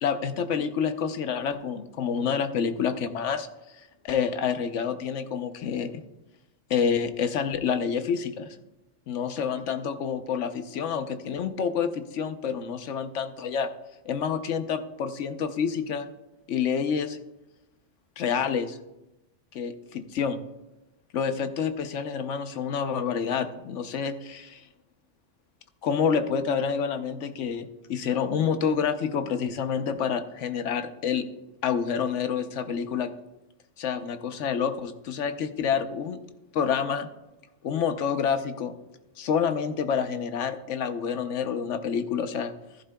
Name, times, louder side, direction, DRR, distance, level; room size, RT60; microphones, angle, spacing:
voice 1, 0.0-3.5 4.0-5.9 6.7-8.6 9.1-13.7 14.1-16.1 16.5-17.2 18.2-18.8 19.5-20.4 21.1-24.6 25.8-31.2 31.6-33.1 33.8-36.2 36.5-37.1 37.6-38.7 39.2-42.5, left 7 dB, 75° left, 9 dB, 1.1 m, -28 dB
14.5 x 11.0 x 2.3 m, 0.96 s
omnidirectional pair, 1.2 m